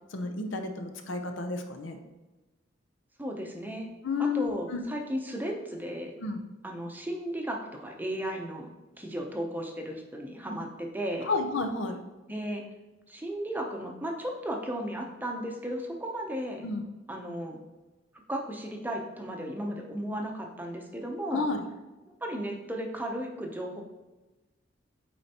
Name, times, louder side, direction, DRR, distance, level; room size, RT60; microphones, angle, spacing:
voice 1, 0.1-2.0 4.0-4.8 6.2-6.4 11.2-12.0 16.6-16.8 21.3-21.6, left 3 dB, 75° left, 5 dB, 0.7 m, -31 dB
voice 2, 3.2-3.9 4.2-6.1 6.6-11.3 12.3-12.6 13.1-16.7 17.1-17.6 18.3-21.5 22.2-23.8, right 1 dB, 10° right, 2 dB, 0.7 m, -35 dB
8.5 x 4.3 x 2.9 m, 1.1 s
head